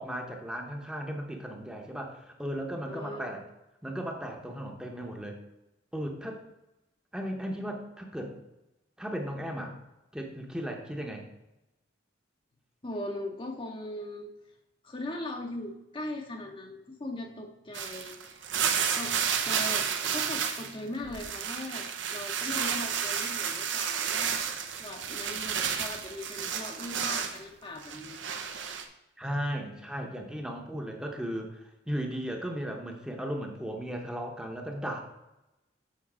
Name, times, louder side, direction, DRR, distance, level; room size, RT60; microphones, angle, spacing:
voice 1, 0.0-3.4 3.8-5.3 5.9-6.4 7.1-8.4 9.0-9.8 10.1-11.2 29.2-35.0, equal, 5° right, 2 dB, 0.8 m, -36 dB
voice 2, 2.8-3.2 12.8-14.3 14.8-18.4 18.9-19.2 19.4-24.4 24.8-28.2, left 1 dB, 25° left, 2 dB, 0.7 m, -39 dB
sound 1, 17.7-20.7 21.0-27.4 27.8-28.8, right 7 dB, 80° right, 0.8 m, -31 dB
7.3 x 3.9 x 6.0 m, 0.94 s
head